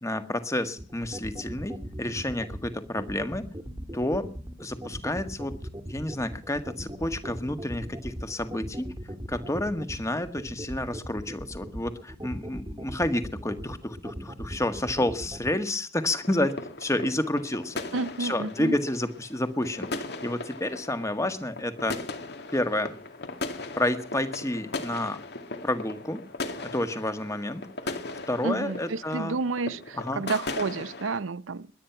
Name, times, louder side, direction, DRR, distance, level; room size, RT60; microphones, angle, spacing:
voice 1, 0.0-3.4 3.9-4.3 4.6-5.5 5.9-8.9 9.3-16.5 16.8-17.8 18.2-21.9 22.5-22.9 23.8-25.2 25.6-26.2 26.7-28.0 28.3-29.4 30.0-30.2, left 1 dB, 15° left, 1.6 m, -30 dB
sound 1, 0.8-15.5, equal, 20° right, 1.6 m, -38 dB
sound 2, 16.1-31.2, left 3 dB, 60° left, 2.2 m, -38 dB
voice 2, 17.9-18.8 28.4-31.7, right 3 dB, 90° right, 0.7 m, -30 dB
21.5 x 9.7 x 5.9 m
head